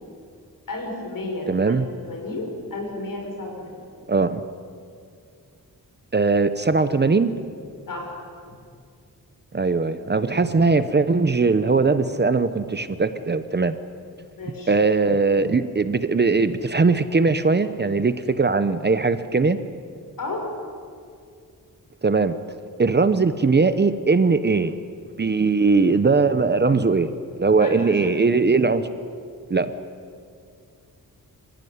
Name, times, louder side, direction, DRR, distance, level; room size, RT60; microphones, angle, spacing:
voice 1, 0.7-1.7 2.0-3.8 7.9-8.2 14.4-14.8 20.2-20.5 27.6-28.1, left 2 dB, 65° left, 1 dB, 6.1 m, -32 dB
voice 2, 1.5-1.8 4.1-4.4 6.1-7.3 9.5-13.8 14.7-19.6 22.0-22.4 22.8-24.8 25.2-27.1 27.4-28.9 29.5-29.7, right 4 dB, 30° right, 12 dB, 0.8 m, -20 dB
27.0 x 15.5 x 9.5 m, 2.3 s
wide cardioid pair, 140°, 35 cm